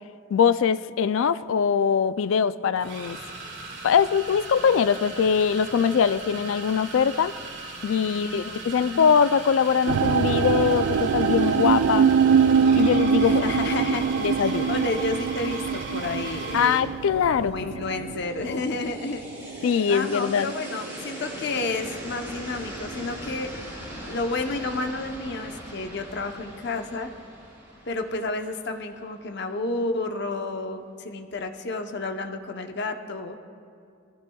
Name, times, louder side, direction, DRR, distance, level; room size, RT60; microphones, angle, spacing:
voice 1, 0.3-3.2 3.8-7.3 7.8-12.1 12.7-13.5 14.2-14.7 16.5-17.7 18.5-18.6 19.6-20.5, left 7 dB, 75° left, 15 dB, 0.4 m, -22 dB
sound 1, 1.4-1.6 2.8-16.9, right 3 dB, 60° right, 1.9 m, -38 dB
voice 2, 8.1-9.1 13.2-14.1 14.4-16.9 17.4-19.2 19.9-23.5 24.1-27.1 27.9-33.4, left 3 dB, 55° left, 5 dB, 0.8 m, -31 dB
sound 2, 9.9-21.0 21.3-21.9 22.5-22.6, right 6 dB, 80° right, 0.3 m, -24 dB
sound 3, 18.1-29.1, equal, 15° right, 3.7 m, -40 dB
20.5 x 15.0 x 2.3 m, 2.3 s
head